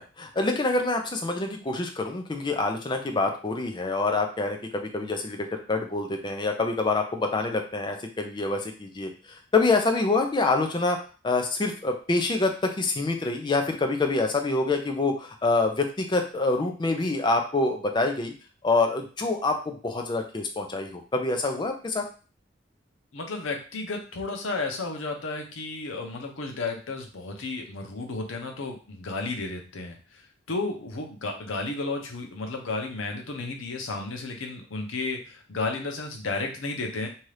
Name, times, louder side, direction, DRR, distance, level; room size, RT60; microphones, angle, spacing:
voice 1, 0.0-11.0 11.2-18.3 18.6-22.1, left 3 dB, 25° left, 4 dB, 0.4 m, -26 dB
voice 2, 23.1-30.2 30.5-37.1, left 3 dB, 85° left, 2 dB, 0.7 m, -33 dB
2.7 x 2.4 x 3.2 m, 0.36 s
head